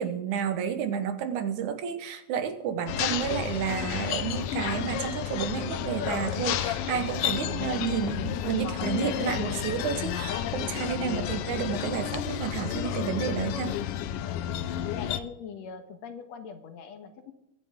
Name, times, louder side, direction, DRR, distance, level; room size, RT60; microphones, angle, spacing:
voice 1, 0.0-13.8, right 8 dB, 80° right, 9 dB, 2.6 m, -31 dB
sound 1, 2.9-15.2, left 11 dB, 90° left, 1.3 m, -31 dB
voice 2, 10.4-10.7 14.2-14.5 14.9-17.3, left 6 dB, 65° left, 8 dB, 2.3 m, -42 dB
23.5 x 9.6 x 3.7 m, 0.87 s
omnidirectional pair, 3.4 m